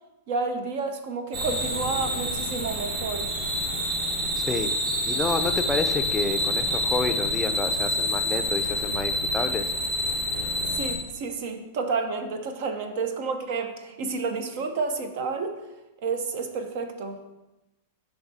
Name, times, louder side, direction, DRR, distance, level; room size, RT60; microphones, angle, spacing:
voice 1, 0.3-3.3 10.7-15.6 16.0-17.2, right 4 dB, 60° right, 7 dB, 0.7 m, -30 dB
sound 1, 1.3-11.0, left 1 dB, 40° right, 1.4 m, -27 dB
voice 2, 5.1-9.7, left 3 dB, 10° left, 7 dB, 0.5 m, -29 dB
10.5 x 3.6 x 2.7 m, 1.0 s
hypercardioid pair, 120°, 0 cm